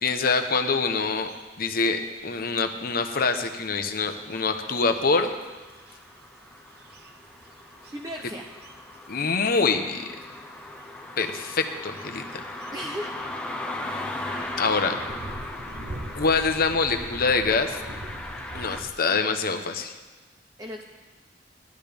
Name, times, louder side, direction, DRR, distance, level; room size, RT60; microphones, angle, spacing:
voice 1, 0.0-1.3 1.6-5.3 9.1-10.0 11.2-12.5 14.6-15.0 16.1-17.8 18.5-19.9, left 4 dB, 55° left, 6 dB, 1.0 m, -25 dB
sound 1, 0.8-18.9, right 1 dB, 60° right, 1.0 m, -45 dB
sound 2, 4.1-18.8, left 2 dB, 5° left, 1.1 m, -38 dB
voice 2, 7.9-8.5 12.7-13.1 14.1-14.8 20.6-20.8, equal, 20° right, 2 dB, 0.8 m, -37 dB
17.5 x 12.0 x 3.5 m, 1.2 s
head